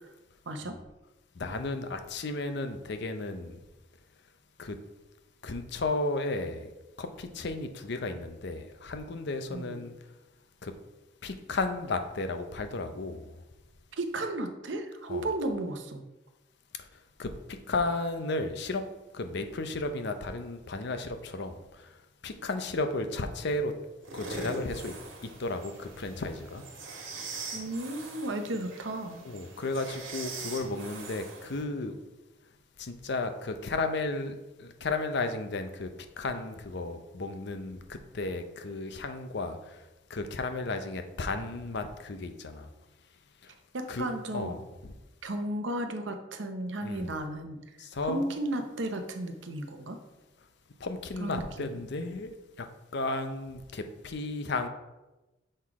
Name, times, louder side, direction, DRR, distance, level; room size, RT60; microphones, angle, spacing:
voice 1, 0.5-0.8 9.5-9.8 14.0-16.0 27.5-29.2 43.7-44.5 45.2-47.6 48.0-50.0 51.2-51.7, right 1 dB, 70° right, 6 dB, 0.8 m, -34 dB
voice 2, 1.4-3.6 4.6-4.8 5.4-6.7 7.0-9.9 10.6-10.7 11.2-13.3 15.1-15.3 17.2-18.8 19.1-21.6 22.2-23.7 24.1-24.9 25.4-26.6 29.2-32.0 32.8-35.9 36.2-39.8 40.1-42.7 43.4-43.5 43.9-44.1 44.3-44.9 46.8-47.2 47.8-48.3 50.8-54.7, left 2 dB, 60° left, 7 dB, 0.6 m, -34 dB
sound 1, 24.0-31.6, right 3 dB, 85° right, 1.6 m, -42 dB
6.5 x 3.8 x 4.7 m, 1.0 s
head